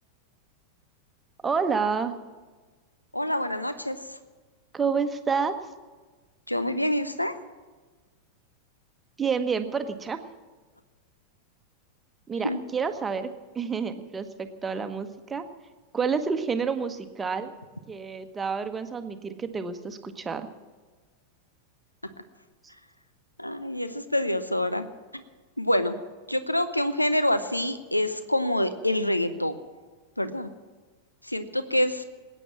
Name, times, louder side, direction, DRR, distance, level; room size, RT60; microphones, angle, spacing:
voice 1, 1.4-2.1 4.7-5.6 9.2-10.2 12.3-13.3 13.5-15.4 15.9-17.5 17.9-20.5, right 5 dB, 15° right, 9 dB, 1.1 m, -29 dB
voice 2, 3.1-4.2 6.5-7.4 12.4-12.6 23.4-24.8 25.1-25.2 25.6-25.9 26.3-29.6 30.2-30.5 31.2-32.0, left 1 dB, 85° left, 12 dB, 0.7 m, -26 dB
20.0 x 9.2 x 7.3 m, 1.3 s
figure-of-eight pair, 90°, 0 cm